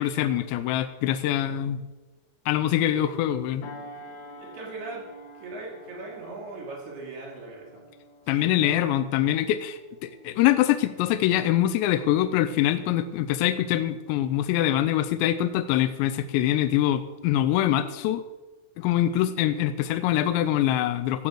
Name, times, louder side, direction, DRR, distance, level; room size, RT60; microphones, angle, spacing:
voice 1, 0.0-1.8 2.5-3.7 8.3-18.2 18.8-21.3, left 12 dB, 85° left, 10 dB, 2.8 m, -24 dB
sound 1, 3.6-12.5 12.9-13.2, left 1 dB, 65° left, 3.0 m, -48 dB
voice 2, 4.4-5.0 5.4-7.8 8.3-8.8, right 3 dB, 65° right, -3 dB, 5.7 m, -39 dB
14.0 x 6.9 x 7.8 m, 1.2 s
omnidirectional pair, 5.2 m